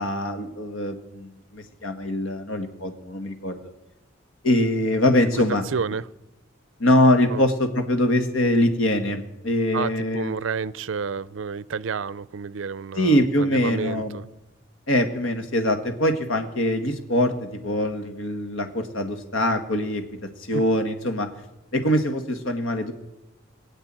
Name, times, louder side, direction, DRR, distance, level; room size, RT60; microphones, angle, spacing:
voice 1, 0.0-3.6 4.4-5.6 6.8-10.3 13.0-14.2 14.9-20.0 20.5-21.3 21.7-22.9, left 1 dB, 85° left, 7 dB, 1.8 m, -23 dB
voice 2, 5.7-6.1 7.3-7.4 9.7-14.2 20.5-20.6, right 5 dB, 70° right, 19 dB, 0.5 m, -30 dB
20.5 x 7.9 x 8.9 m, 0.99 s
head